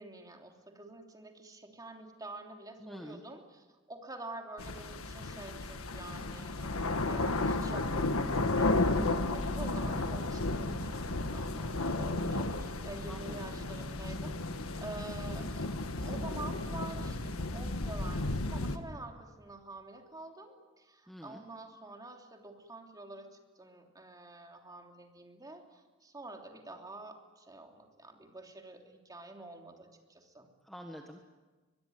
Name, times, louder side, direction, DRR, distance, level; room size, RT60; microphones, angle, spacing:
voice 1, 0.0-6.7 7.0-15.7 16.0-23.3 23.6-30.5, right 2 dB, 20° right, 2 dB, 3.2 m, -48 dB
voice 2, 2.8-3.2 13.0-13.4 21.1-21.4 30.6-31.2, equal, ahead, 3 dB, 1.6 m, -47 dB
sound 1, 4.6-18.8, left 2 dB, 85° left, 1.6 m, -33 dB
22.5 x 22.5 x 9.4 m, 1.2 s
head